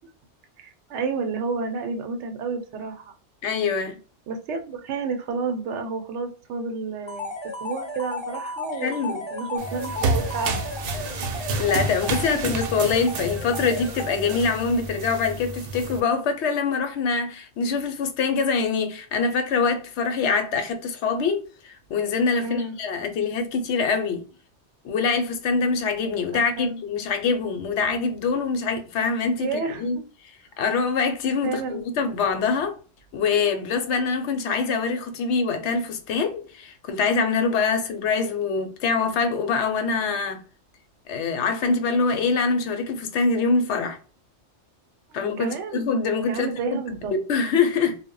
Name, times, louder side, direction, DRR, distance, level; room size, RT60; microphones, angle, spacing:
voice 1, 0.6-3.1 4.3-7.3 7.6-10.6 12.3-12.4 22.4-22.8 26.3-26.8 29.4-30.0 31.4-31.8 45.1-45.8 46.3-47.2, right 4 dB, 85° right, 0.9 m, -30 dB
voice 2, 3.4-4.0 8.8-9.2 11.6-24.2 24.8-30.0 30.6-32.8 33.1-40.4 41.1-44.0 45.1-46.6 47.3-48.0, left 4 dB, 80° left, 0.9 m, -24 dB
sound 1, 7.1-14.8, left 2 dB, 40° left, 0.4 m, -35 dB
sound 2, 9.6-16.0, right 3 dB, 60° right, 0.7 m, -30 dB
2.1 x 2.1 x 3.7 m
omnidirectional pair, 1.2 m